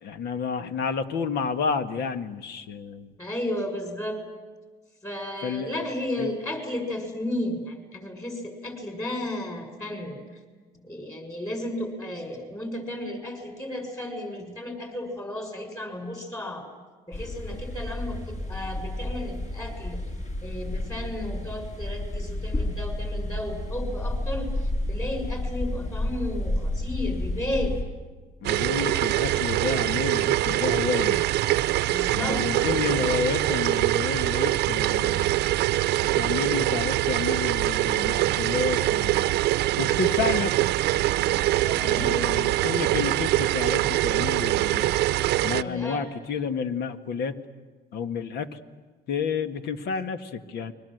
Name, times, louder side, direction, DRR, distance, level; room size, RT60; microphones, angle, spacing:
voice 1, 0.0-3.1 5.4-5.7 6.2-6.3 28.4-31.2 32.1-35.3 36.0-39.3 39.8-40.5 41.8-44.9 45.4-47.4 47.9-48.5 49.1-50.7, left 6 dB, 70° left, 9 dB, 1.8 m, -30 dB
voice 2, 3.2-4.2 5.0-10.2 10.8-16.7 17.1-20.0 20.4-27.8 31.9-32.7 40.0-40.4 41.6-42.4 45.6-46.0, left 1 dB, 20° left, 4 dB, 7.0 m, -33 dB
sound 1, 17.1-27.8, left 1 dB, 45° left, 5.9 m, -31 dB
sound 2, 28.4-45.6, right 15 dB, 80° right, 0.7 m, -24 dB
29.5 x 22.5 x 8.0 m, 1.3 s
cardioid pair, 110°, 17 cm